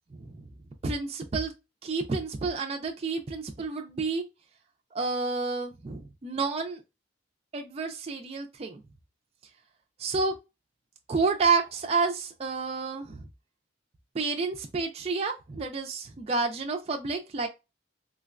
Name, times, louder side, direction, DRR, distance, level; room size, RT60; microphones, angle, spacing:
voice 1, 0.1-0.5 0.8-1.5 1.8-4.2 4.9-6.8 7.5-8.8 10.0-10.4 11.1-13.3 14.1-17.5, right 4 dB, 30° right, 0.4 m, -30 dB
3.7 x 2.2 x 2.3 m
head